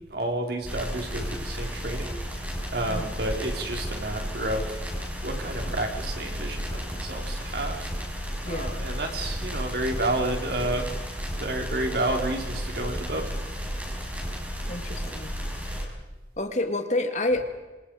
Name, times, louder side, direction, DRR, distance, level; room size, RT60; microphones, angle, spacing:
voice 1, 0.1-2.4 2.7-7.9 8.5-10.9 11.4-13.4, right 1 dB, 60° right, 2 dB, 4.8 m, -30 dB
sound 1, 0.7-15.8, equal, 10° right, 5.5 m, -33 dB
voice 2, 14.7-15.3 15.7-15.9 16.4-17.4, left 2 dB, 40° left, 6 dB, 2.3 m, -28 dB
28.0 x 26.5 x 5.1 m, 1.2 s
head